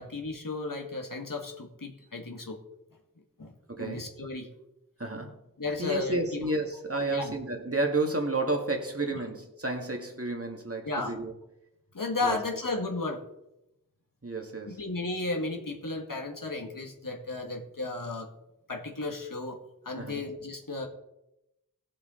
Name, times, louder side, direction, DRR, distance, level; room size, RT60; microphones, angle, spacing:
voice 1, 0.0-2.6 3.4-4.5 5.6-6.2 7.1-7.3 10.9-11.2 11.9-13.2 14.7-18.3 18.7-19.6 19.9-20.9, left 3 dB, 70° left, 2 dB, 1.8 m, -34 dB
voice 2, 3.7-4.1 5.0-5.4 5.8-11.3 12.2-12.4 14.2-14.8 20.0-20.2, right 2 dB, 40° right, 3 dB, 1.9 m, -31 dB
18.0 x 7.2 x 3.8 m, 0.88 s
wide cardioid pair, 45°, 34 cm